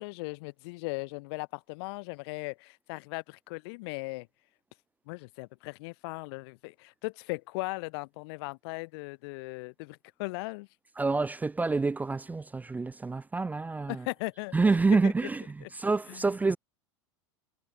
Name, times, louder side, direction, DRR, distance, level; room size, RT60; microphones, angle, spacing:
voice 1, 0.0-4.3 5.1-10.7 13.9-14.6 15.0-15.1 15.6-15.7 16.1-16.2, left 26 dB, 55° left, 0.8 m, -38 dB
voice 2, 11.0-14.0 14.5-16.6, right 3 dB, 10° right, 0.5 m, -27 dB
figure-of-eight pair, 85°, 16 cm